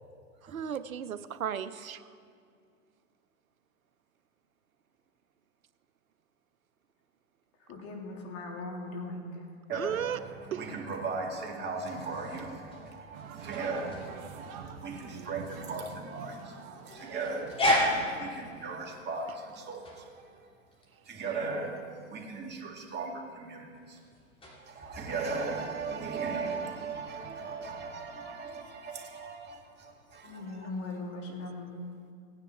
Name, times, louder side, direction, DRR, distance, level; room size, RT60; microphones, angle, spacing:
voice 1, 0.5-2.0 9.7-10.2 10.5-10.6, right 9 dB, 90° right, 14 dB, 0.7 m, -34 dB
voice 2, 7.7-9.4 30.2-31.8, left 2 dB, 35° left, 0 dB, 2.8 m, -39 dB
voice 3, 9.7-14.5 14.8-16.5 16.9-17.6 18.2-20.1 21.1-21.8 22.1-23.7 24.6-30.6, right 4 dB, 25° right, 1 dB, 2.0 m, -37 dB
sound 1, 12.1-26.4, left 1 dB, 15° left, 2.6 m, -36 dB
sound 2, 13.1-18.1, right 6 dB, 45° right, 1.3 m, -46 dB
16.5 x 9.8 x 4.4 m, 2.2 s
hypercardioid pair, 110°, 41 cm